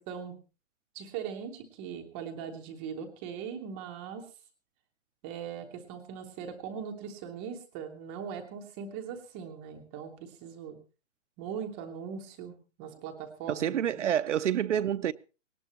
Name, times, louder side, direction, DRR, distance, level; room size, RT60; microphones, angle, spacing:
voice 1, 0.9-4.2 5.2-10.8 11.4-14.1, right 7 dB, 10° right, 0.6 m, -40 dB
voice 2, 13.5-15.1, right 10 dB, 70° right, 0.6 m, -28 dB
19.0 x 17.5 x 2.9 m
hypercardioid pair, 165°, 38 cm